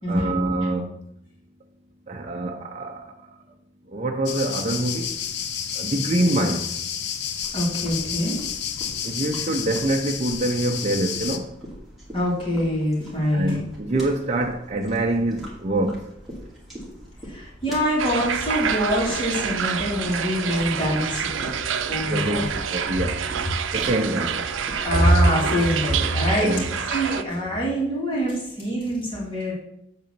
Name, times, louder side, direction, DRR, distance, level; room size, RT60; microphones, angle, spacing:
voice 1, 0.1-0.9 2.1-3.0 3.9-5.1 5.8-6.6 9.0-11.4 13.3-16.0 22.1-23.2 23.7-24.4 26.4-26.8, right 1 dB, 35° right, 0.6 m, -25 dB
sound 1, 4.3-11.4, left 8 dB, 60° left, 0.6 m, -30 dB
sound 2, 7.4-25.4, equal, ahead, 2.4 m, -42 dB
voice 2, 7.5-8.4 12.1-13.7 17.3-21.5 21.9-22.4 24.8-26.5 26.9-29.5, equal, 25° left, 2.6 m, -24 dB
sound 3, 18.0-27.2, right 7 dB, 85° right, 0.5 m, -27 dB
8.1 x 3.8 x 6.6 m
head